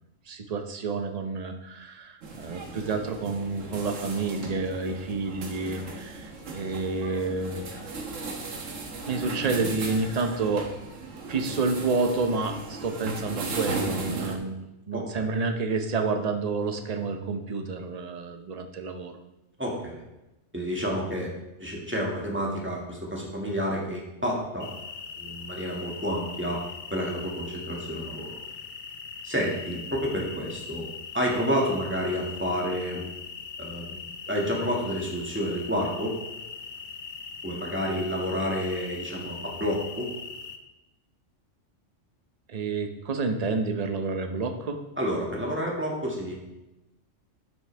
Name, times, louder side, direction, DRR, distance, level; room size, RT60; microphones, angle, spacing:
voice 1, 0.3-7.6 9.1-10.7 11.3-14.6 14.9-19.2 42.5-44.8, right 4 dB, 35° right, 5 dB, 0.8 m, -29 dB
sound 1, 2.2-14.4, right 3 dB, 90° right, 1.5 m, -36 dB
voice 2, 14.9-15.2 19.6-20.0 20.5-21.3 21.6-24.7 25.2-26.6 26.9-28.4 29.2-30.9 31.1-33.0 33.6-36.2 37.4-40.1 45.0-46.3, equal, 10° right, -3 dB, 1.9 m, -29 dB
sound 2, 24.6-40.6, left 5 dB, 45° left, 0.7 m, -41 dB
12.0 x 6.2 x 3.4 m, 0.98 s
omnidirectional pair, 1.3 m